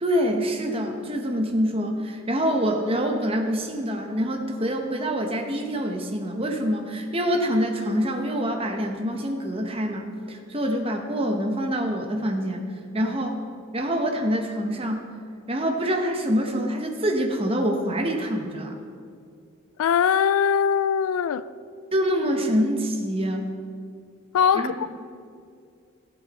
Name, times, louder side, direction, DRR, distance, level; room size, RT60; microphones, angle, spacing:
voice 1, 0.0-12.7 12.9-13.4 13.7-15.1 15.5-18.8 21.9-23.5 24.5-24.7, equal, 25° right, 0.9 m, -25 dB
voice 2, 19.8-21.4 24.3-24.9, left 7 dB, 75° left, 0.3 m, -21 dB
15.0 x 8.0 x 4.1 m
head